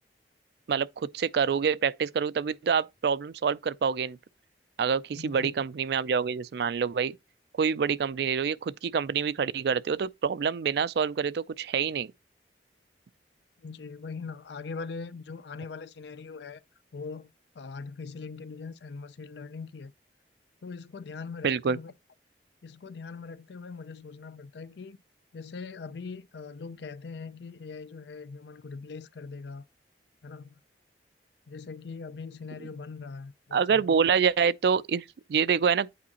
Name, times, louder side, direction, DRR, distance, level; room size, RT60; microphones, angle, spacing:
voice 1, 0.7-4.2 4.8-7.2 7.6-12.1 21.4-21.8 33.5-35.0 35.3-35.9, right 6 dB, 60° right, 0.3 m, -26 dB
voice 2, 5.1-5.5 13.6-16.6 16.9-17.3 17.5-19.9 20.6-21.9 22.6-25.0 25.3-29.6 30.2-30.6 31.5-34.0, left 4 dB, 70° left, 0.5 m, -41 dB
8.5 x 4.8 x 2.9 m
head